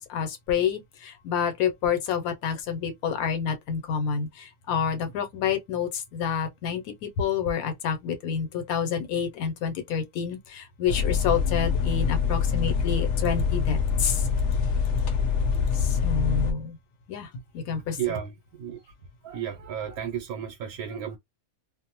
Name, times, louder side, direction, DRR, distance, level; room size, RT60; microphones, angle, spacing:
voice 1, 0.0-14.2 15.8-16.8 17.1-17.3 17.5-18.0, left 7 dB, 80° left, 1.1 m, -28 dB
sound 1, 10.9-16.5, left 6 dB, 60° left, 0.8 m, -25 dB
voice 2, 18.0-18.8 19.2-21.2, right 9 dB, 85° right, 1.1 m, -33 dB
2.5 x 2.0 x 2.8 m
omnidirectional pair, 1.5 m